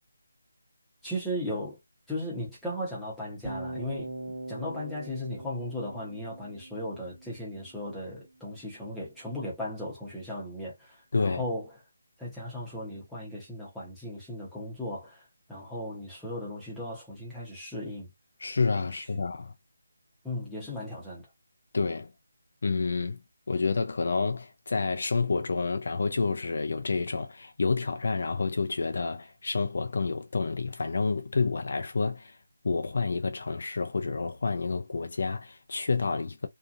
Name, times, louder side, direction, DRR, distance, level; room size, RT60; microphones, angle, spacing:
voice 1, 1.0-1.8 2.1-4.1 4.5-11.7 12.2-18.1 18.9-19.0 20.2-21.3, left 1 dB, ahead, 0.8 m, -36 dB
sound 1, 3.4-7.5, right 1 dB, 90° right, 1.1 m, -41 dB
voice 2, 11.1-11.4 18.4-19.5 21.7-22.1 22.6-23.2 23.5-32.3 32.6-36.5, left 4 dB, 50° left, 0.4 m, -29 dB
2.7 x 2.4 x 2.5 m
figure-of-eight pair, 175°, 0 cm